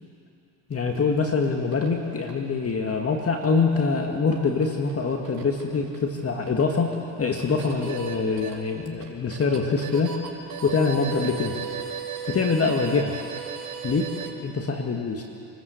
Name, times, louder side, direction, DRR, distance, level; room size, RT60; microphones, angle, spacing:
voice 1, 0.7-6.9 7.2-10.2 10.6-11.5 12.3-13.1 13.8-15.2, left 4 dB, 30° left, 2 dB, 2.0 m, -24 dB
sound 1, 0.7-14.3, right 7 dB, 55° right, 4.5 m, -38 dB
27.0 x 14.0 x 8.2 m, 2.6 s
supercardioid pair, 85°, 44 cm